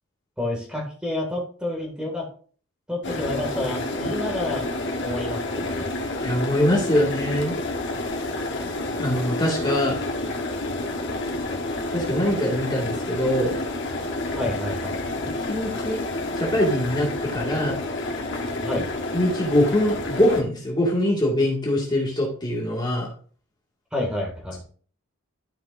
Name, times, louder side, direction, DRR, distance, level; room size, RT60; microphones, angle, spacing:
voice 1, 0.4-2.3 2.9-4.7 5.0-5.9 14.4-15.0 18.6-18.9 23.9-24.6, left 1 dB, 5° right, -2 dB, 2.2 m, -29 dB
sound 1, 3.0-20.4, left 2 dB, 60° left, 1.3 m, -29 dB
voice 2, 6.2-7.5 9.0-10.0 11.9-13.5 15.4-16.0 16.4-17.8 19.1-23.1, left 1 dB, 20° left, -3 dB, 2.1 m, -23 dB
12.5 x 5.9 x 2.6 m, 0.44 s
head